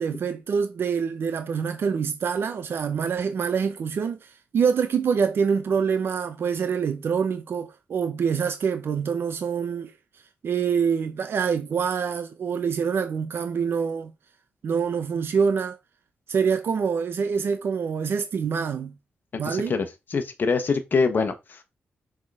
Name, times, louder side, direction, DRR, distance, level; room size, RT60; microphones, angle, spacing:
voice 1, 0.0-9.9 10.4-14.1 14.6-15.8 16.3-18.9 19.4-19.8, right 6 dB, 65° right, 0.8 m, -25 dB
voice 2, 19.5-19.9 20.1-21.3, left 4 dB, 50° left, 1.1 m, -23 dB
6.4 x 3.8 x 4.8 m
wide cardioid pair, 110°, 4 cm